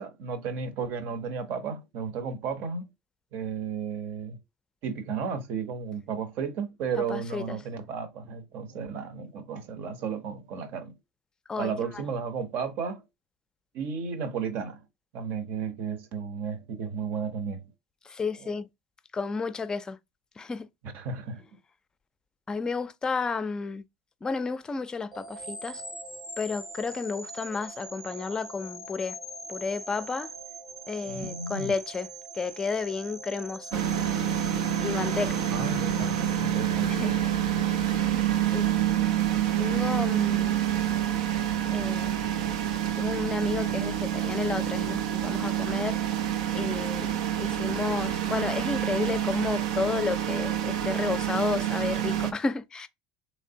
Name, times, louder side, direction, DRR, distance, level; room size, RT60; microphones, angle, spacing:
voice 1, 0.0-2.9 3.3-4.4 4.8-10.9 11.6-13.0 13.7-14.8 15.1-17.6 18.4-18.6 20.8-21.4 31.1-31.7 35.5-37.1, right 6 dB, 60° right, 0.9 m, -33 dB
voice 2, 7.0-7.6 11.5-11.7 18.0-18.7 19.1-20.0 20.4-20.7 22.5-23.8 24.2-25.8 26.4-29.2 29.5-30.3 30.9-32.1 32.3-33.8 34.8-35.4 36.8-37.2 38.5-38.7 39.6-40.6 41.7-42.2 43.0-46.0 46.5-52.9, left 4 dB, 20° left, 0.4 m, -32 dB
sound 1, 25.1-37.3, right 2 dB, 10° right, 0.7 m, -42 dB
sound 2, 33.7-52.3, right 11 dB, 85° right, 0.5 m, -27 dB
3.3 x 3.2 x 2.7 m
supercardioid pair, 95°, 3 cm